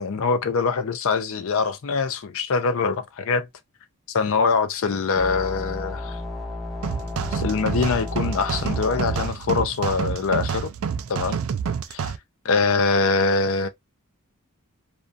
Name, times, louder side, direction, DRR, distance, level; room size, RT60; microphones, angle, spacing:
voice 1, 0.0-3.5 4.1-6.2 7.3-10.7 11.1-11.4 11.9-12.0 12.4-13.7, left 4 dB, 65° left, 0.5 m, -23 dB
sound 1, 5.2-9.3, left 2 dB, ahead, 0.5 m, -33 dB
sound 2, 6.8-12.2, right 6 dB, 65° right, 0.4 m, -28 dB
2.5 x 2.2 x 2.4 m
head